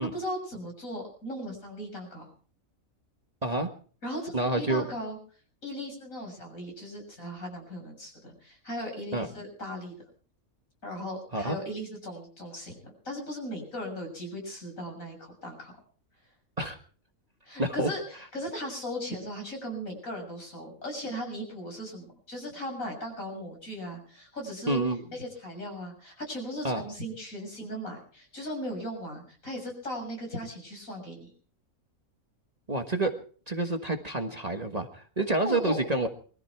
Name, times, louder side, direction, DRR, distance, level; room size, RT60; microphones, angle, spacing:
voice 1, 0.0-2.3 4.0-5.2 5.6-9.9 10.8-15.7 17.4-18.0 18.3-24.8 25.1-31.3 35.4-35.8, equal, 70° left, 2 dB, 7.3 m, -37 dB
voice 2, 4.3-4.8 9.1-9.3 11.3-11.6 16.6-16.8 17.6-17.9 24.7-25.0 26.6-26.8 32.7-33.1 33.5-36.1, right 2 dB, 30° right, 5 dB, 1.5 m, -28 dB
23.0 x 14.0 x 4.5 m, 0.44 s
omnidirectional pair, 1.5 m